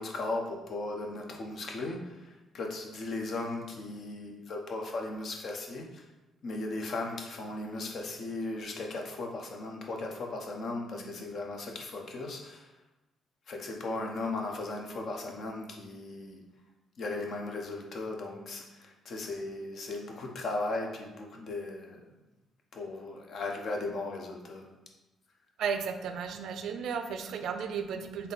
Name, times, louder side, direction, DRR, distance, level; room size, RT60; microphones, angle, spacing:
voice 1, 0.0-6.0 6.4-12.7 13.5-16.4 17.0-22.0 22.7-24.7, left 2 dB, 60° left, 2 dB, 0.7 m, -37 dB
voice 2, 25.6-28.3, right 6 dB, 75° right, 7 dB, 0.4 m, -34 dB
3.6 x 2.7 x 3.9 m, 1.0 s
cardioid pair, 90°, 0 cm